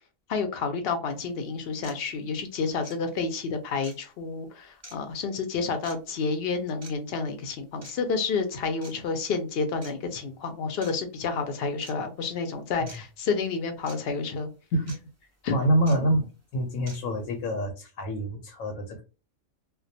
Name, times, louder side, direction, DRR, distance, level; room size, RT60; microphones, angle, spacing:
voice 1, 0.3-14.5 15.4-15.6, left 4 dB, 65° left, 0.6 m, -30 dB
sound 1, 1.1-1.2 1.8-2.0 2.8-3.0 3.8-4.0 4.8-5.0 5.8-6.0 6.8-6.9 7.8-8.0 8.8-8.9 9.8-9.9 10.8-10.9 11.8-11.9 12.9-13.0 13.9-14.0 14.9-15.0 15.9-16.0 16.9-17.0, right 2 dB, 25° right, 0.3 m, -46 dB
voice 2, 15.5-16.3 16.5-19.0, right 1 dB, 85° left, 1.0 m, -26 dB
2.2 x 2.2 x 2.6 m
omnidirectional pair, 1.4 m